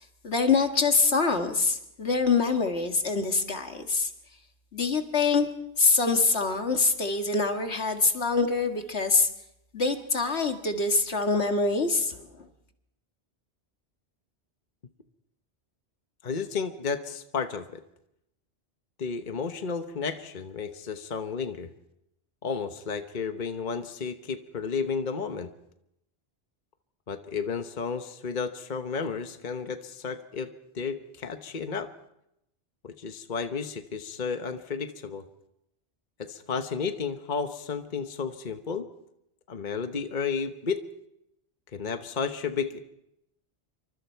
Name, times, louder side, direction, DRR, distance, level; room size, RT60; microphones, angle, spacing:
voice 1, 0.2-4.1 4.7-5.5 5.8-9.3 9.7-12.1, left 4 dB, 75° left, 5 dB, 2.1 m, -24 dB
voice 2, 16.2-17.8 19.0-21.7 22.4-25.5 27.1-30.5 30.7-31.9 32.8-35.2 36.2-38.8 39.5-40.8 41.7-42.8, left 5 dB, 45° left, 7 dB, 1.2 m, -32 dB
27.5 x 25.0 x 4.6 m, 0.81 s
omnidirectional pair, 1.1 m